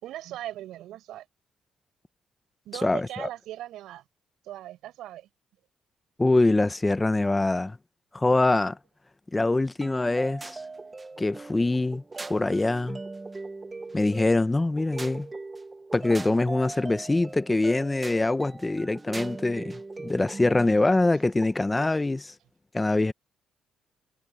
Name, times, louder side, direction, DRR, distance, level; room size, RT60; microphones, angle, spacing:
voice 1, 0.0-1.3 2.6-4.0 4.4-5.3 20.6-20.7, right 13 dB, 85° right, 5.7 m, -39 dB
voice 2, 2.8-3.3 6.2-7.8 8.1-8.8 9.3-10.6 11.2-12.0 12.3-13.0 13.9-15.3 15.9-22.3 22.7-23.1, left 2 dB, 15° left, 1.0 m, -24 dB
sound 1, 9.8-22.0, right 3 dB, 20° right, 1.2 m, -40 dB
cardioid pair, 115°, 0 cm